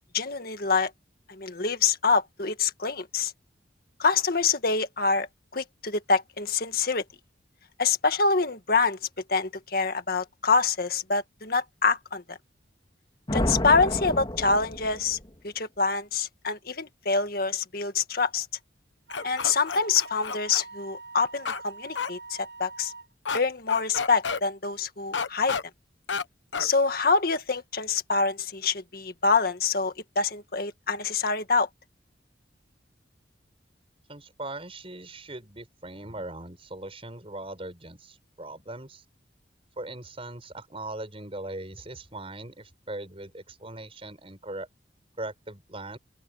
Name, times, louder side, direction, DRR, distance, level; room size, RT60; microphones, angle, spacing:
voice 1, 0.1-0.9 1.3-3.3 4.0-5.3 5.5-7.0 7.8-9.0 9.3-12.4 13.3-15.2 15.4-18.5 19.2-22.9 23.3-25.6 26.6-31.7, left 4 dB, 55° left, 1.9 m, -26 dB
sound 1, 13.3-15.3, left 1 dB, 25° left, 2.5 m, -30 dB
sound 2, 19.1-20.6 21.5-21.6 22.0-22.1 23.3-23.4 23.7-24.4 25.1-25.6 26.1-26.2 26.5-26.7, left 5 dB, 90° left, 1.2 m, -30 dB
Wind instrument woodwind instrument, 19.1-23.1, right 3 dB, 70° right, 5.9 m, -44 dB
voice 2, 34.1-39.0 39.8-44.7 45.2-46.0, right 2 dB, 30° right, 6.1 m, -39 dB
open air
head